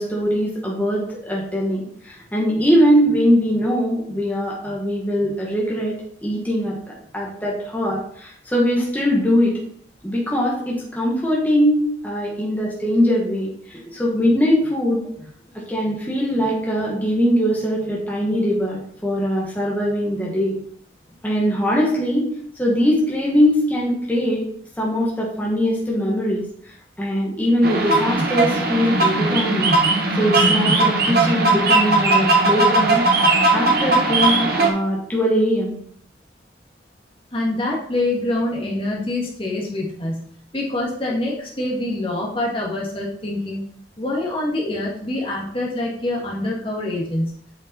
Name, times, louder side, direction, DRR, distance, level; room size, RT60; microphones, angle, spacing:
voice 1, 0.0-9.6 10.0-15.3 15.5-20.6 21.2-22.3 22.6-24.5 24.8-26.4 27.0-29.7 30.2-33.0 33.5-35.8, equal, 10° left, -4 dB, 1.6 m, -21 dB
sound 1, 27.6-34.7, right 2 dB, 50° right, 1.5 m, -18 dB
voice 2, 37.3-40.3 40.5-43.6 44.0-47.4, left 1 dB, 30° left, -3 dB, 1.7 m, -25 dB
8.3 x 5.3 x 4.3 m, 0.63 s
head